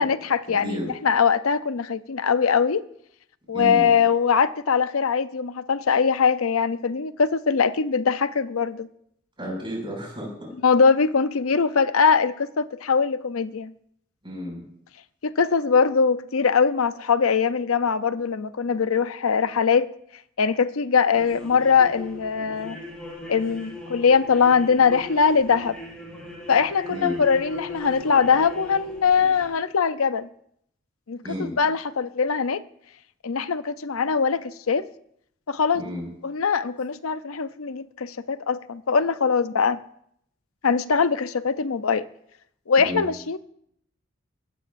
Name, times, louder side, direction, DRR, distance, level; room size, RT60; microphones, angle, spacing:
voice 1, 0.0-2.8 3.5-8.9 10.6-13.7 15.2-19.9 20.4-22.8 23.3-25.8 26.5-30.3 31.1-32.6 33.2-34.9 35.5-35.8 36.2-39.8 40.6-42.1 42.7-43.4, left 6 dB, 90° left, 0.6 m, -22 dB
voice 2, 3.5-3.9 9.4-10.5 14.2-14.6 26.9-27.2 31.2-31.5 35.7-36.0 42.8-43.0, equal, 25° right, 6.6 m, -32 dB
sound 1, 21.1-29.5, left 2 dB, 5° left, 4.8 m, -39 dB
24.5 x 12.5 x 2.6 m
head